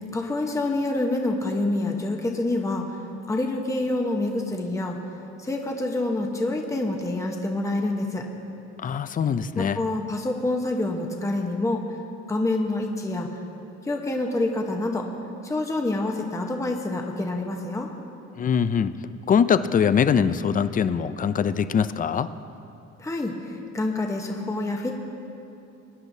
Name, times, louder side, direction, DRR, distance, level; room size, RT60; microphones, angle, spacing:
voice 1, 0.1-3.0 3.3-5.0 5.4-8.2 9.5-11.8 12.3-13.3 13.9-15.1 15.4-17.9 23.0-25.0, left 2 dB, 10° left, 1 dB, 0.9 m, -27 dB
voice 2, 8.8-9.8 18.4-18.9 19.3-22.3, left 7 dB, 30° left, 13 dB, 0.4 m, -22 dB
22.0 x 9.9 x 2.7 m, 2.7 s
cardioid pair, 110°, 29 cm